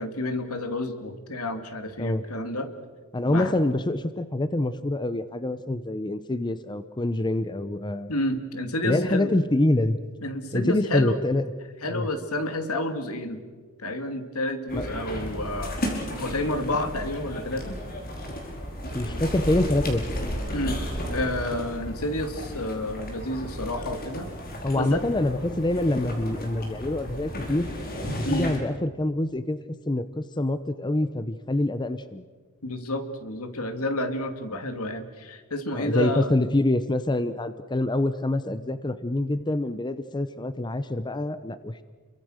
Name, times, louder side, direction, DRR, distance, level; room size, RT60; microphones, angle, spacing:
voice 1, 0.0-2.7 3.3-3.5 8.1-9.3 10.2-11.2 11.8-13.4 13.8-15.8 16.2-17.8 20.5-20.8 21.1-24.3 24.7-25.0 28.2-28.5 32.6-36.3, left 1 dB, 75° left, 8 dB, 2.6 m, -30 dB
voice 2, 3.1-8.1 8.8-10.0 10.5-11.5 11.9-12.1 14.7-14.9 18.9-20.0 24.6-27.7 28.1-32.3 35.7-41.8, left 1 dB, 20° left, 12 dB, 0.7 m, -26 dB
sound 1, 14.7-28.6, equal, 45° left, 4.9 m, -34 dB
30.0 x 23.5 x 6.5 m, 1.5 s
head